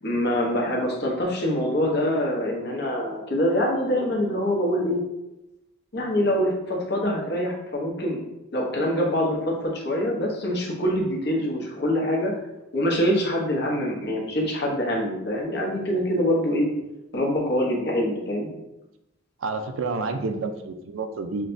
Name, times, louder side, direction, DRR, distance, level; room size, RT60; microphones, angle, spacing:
voice 1, 0.0-5.0 5.9-8.2 8.5-12.3 12.7-16.7 17.1-18.5, equal, 55° left, -2 dB, 0.9 m, -24 dB
voice 2, 19.4-21.5, right 3 dB, 80° right, 7 dB, 0.4 m, -29 dB
6.1 x 2.2 x 2.6 m, 0.93 s
head